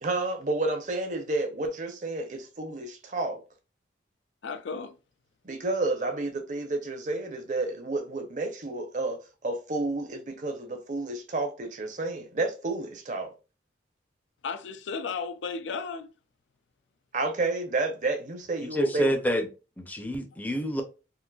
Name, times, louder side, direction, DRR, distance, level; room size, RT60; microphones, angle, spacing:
voice 1, 0.0-3.4 5.4-13.3 17.1-19.1, right 2 dB, 40° right, 0.6 m, -30 dB
voice 2, 4.4-5.0 14.4-16.1, left 5 dB, 75° left, 0.4 m, -34 dB
voice 3, 18.6-19.5 19.8-20.8, equal, 10° left, 0.5 m, -28 dB
3.8 x 2.5 x 2.3 m
head